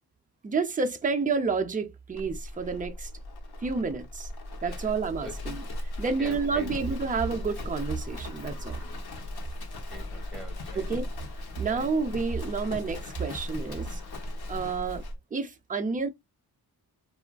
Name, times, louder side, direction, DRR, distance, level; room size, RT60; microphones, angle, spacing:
voice 1, 0.4-3.1 3.6-4.3 4.6-5.6 6.0-8.8 10.8-11.0 11.6-14.0 14.5-15.0 15.3-16.1, right 4 dB, 20° right, 0.4 m, -29 dB
Livestock farm animals working animals, 2.1-15.2, left 1 dB, 75° left, 0.8 m, -37 dB
voice 2, 4.6-5.4 6.0-6.9 9.7-10.9 11.6-11.8 13.2-13.3, right 1 dB, ahead, 1.0 m, -45 dB
sound 1, 7.6-9.0, left 2 dB, 50° left, 1.2 m, -51 dB
3.4 x 2.4 x 2.2 m
wide cardioid pair, 140°, 39 cm